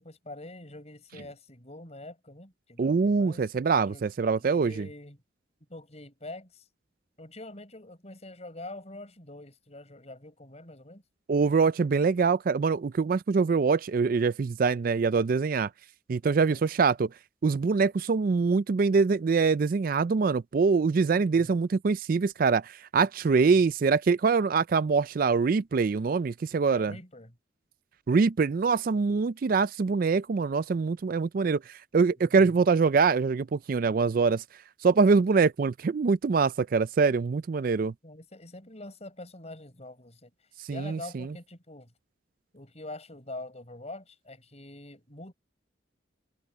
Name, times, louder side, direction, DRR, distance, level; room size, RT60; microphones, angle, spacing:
voice 1, 0.0-3.5 3.8-4.0 4.4-5.2 5.7-6.7 7.2-11.0 16.4-16.6 21.1-21.7 23.3-23.6 26.7-27.3 32.2-32.6 38.0-40.3 40.7-41.9 42.5-45.3, left 2 dB, 35° left, 5.9 m, -45 dB
voice 2, 2.8-4.9 11.3-15.7 16.1-17.1 17.4-26.9 28.1-34.4 34.8-37.9 40.7-41.3, right 4 dB, 45° right, 0.4 m, -24 dB
head